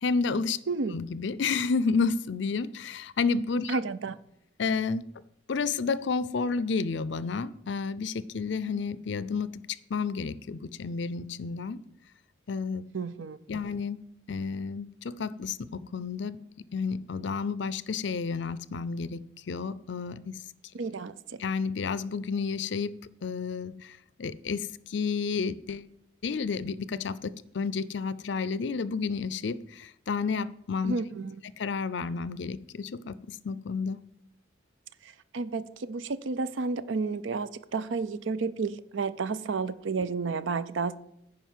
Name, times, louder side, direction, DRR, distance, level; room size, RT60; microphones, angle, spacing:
voice 1, 0.0-0.6 0.9-3.8 4.6-5.1 5.5-9.6 9.9-11.8 12.5-12.9 13.5-14.0 14.3-16.4 16.7-20.4 21.4-22.9 23.2-25.9 26.2-30.9 31.6-34.0, left 5 dB, 60° left, 0.5 m, -31 dB
voice 2, 3.7-4.2 12.9-13.4 20.7-21.4 30.8-31.3 35.0-41.0, right 4 dB, 70° right, 0.5 m, -31 dB
10.0 x 5.1 x 7.4 m
head